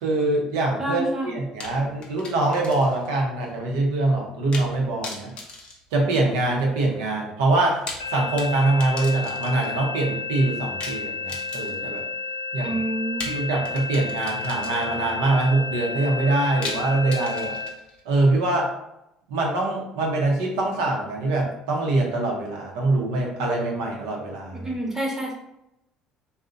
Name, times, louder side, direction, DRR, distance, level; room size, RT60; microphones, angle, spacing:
voice 1, 0.0-5.3 5.9-7.8 8.1-12.0 12.5-12.8 13.2-17.6 18.0-18.7 19.3-24.7, right 2 dB, 80° right, 0 dB, 0.6 m, -24 dB
voice 2, 0.8-1.3 12.6-13.2 24.6-25.3, right 1 dB, 20° right, -1 dB, 0.9 m, -27 dB
sound 1, 1.6-3.1 3.4-3.5 4.5-4.8 5.0-6.6 7.6-9.8 10.8-12.0 13.2-15.1 16.6-18.0, left 3 dB, 50° left, 0.6 m, -38 dB
sound 2, 8.0-17.7, left 4 dB, 90° left, 0.4 m, -32 dB
2.6 x 2.0 x 2.4 m, 0.85 s
hypercardioid pair, 65°, 2 cm